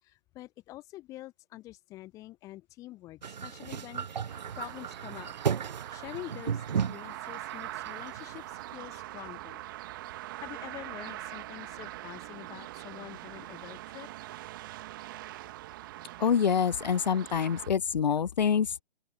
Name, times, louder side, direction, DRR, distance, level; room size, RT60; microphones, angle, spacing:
voice 1, 0.0-5.3 5.9-9.6 10.4-14.1, left 16 dB, 10° left, 4.6 m, -46 dB
sound 1, 3.2-8.6, right 7 dB, 45° right, 3.0 m, -35 dB
sound 2, 4.3-17.7, right 16 dB, 20° right, 5.3 m, -43 dB
voice 2, 16.2-18.8, left 7 dB, 45° left, 0.9 m, -26 dB
open air
hypercardioid pair, 175°, 30 cm